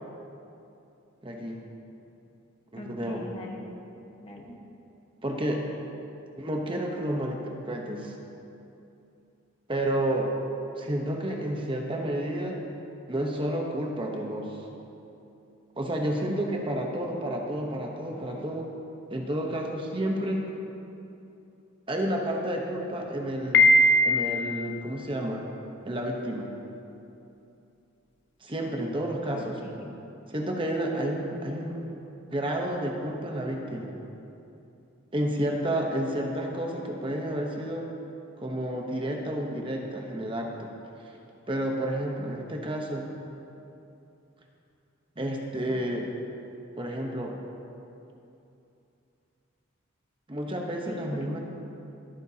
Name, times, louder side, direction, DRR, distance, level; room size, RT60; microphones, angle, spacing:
voice 1, 1.2-1.6 2.7-3.2 5.2-5.7 6.4-8.2 9.7-10.3 10.8-12.6 13.1-14.6 15.8-18.7 19.1-20.4 21.9-23.7 24.0-25.4 25.9-26.5 28.4-29.6 30.3-32.0 32.3-33.9 35.1-37.9 38.4-40.7 41.5-43.1 45.2-46.1 46.8-47.3 50.3-51.4, right 1 dB, 25° right, 1 dB, 0.9 m, -30 dB
voice 2, 2.8-3.6 4.2-4.6 29.3-29.9 50.9-51.4, left 1 dB, 30° left, 0 dB, 1.3 m, -41 dB
Piano, 23.5-24.6, left 1 dB, 55° left, 0.7 m, -19 dB
23.0 x 9.0 x 2.8 m, 2.8 s
head